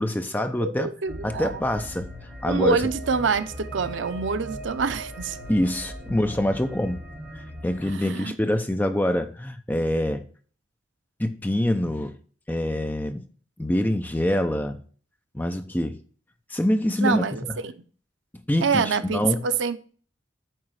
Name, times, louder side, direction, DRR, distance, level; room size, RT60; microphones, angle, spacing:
voice 1, 0.0-0.9 1.2-2.1 2.4-2.8 5.5-7.0 7.6-10.2 11.2-12.1 12.5-13.3 13.6-14.8 15.3-16.0 16.5-17.3 18.3-19.4, left 1 dB, 10° left, 0.5 m, -25 dB
voice 2, 0.6-1.6 2.5-5.4 7.9-8.4 17.0-17.7 18.6-19.8, right 5 dB, 80° right, 0.6 m, -26 dB
sound 1, 1.1-7.9, equal, 10° right, 2.2 m, -39 dB
8.9 x 3.2 x 6.2 m
head